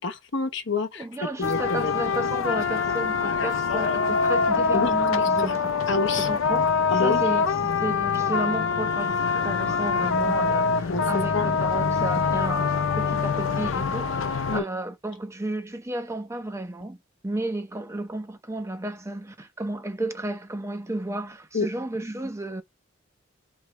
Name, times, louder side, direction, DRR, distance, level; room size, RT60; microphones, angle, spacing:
voice 1, 0.0-2.0 4.7-4.9 5.2-5.5 5.9-6.3 6.9-7.2 10.8-11.0 11.3-11.5 14.5-14.7 21.5-21.7, left 3 dB, 65° left, 1.0 m, -28 dB
voice 2, 1.0-5.8 6.2-17.0 17.2-22.6, right 2 dB, 15° right, 0.7 m, -33 dB
sound 1, 1.4-14.6, left 5 dB, 85° left, 0.6 m, -24 dB
3.3 x 3.2 x 4.4 m
head